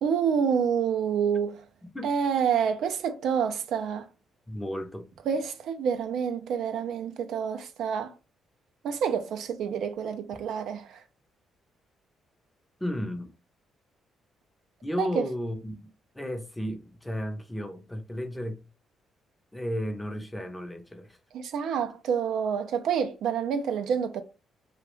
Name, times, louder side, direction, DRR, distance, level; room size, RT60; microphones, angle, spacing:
voice 1, 0.0-1.6 2.0-4.1 5.3-8.1 8.8-11.0 15.0-15.3 21.3-24.2, right 7 dB, 75° right, 0.3 m, -28 dB
voice 2, 4.5-5.1 10.3-10.4 12.8-13.3 14.8-15.9 16.1-18.6 19.5-21.2, equal, 10° left, 0.5 m, -33 dB
2.3 x 2.1 x 3.0 m
cardioid pair, 90°, 0 cm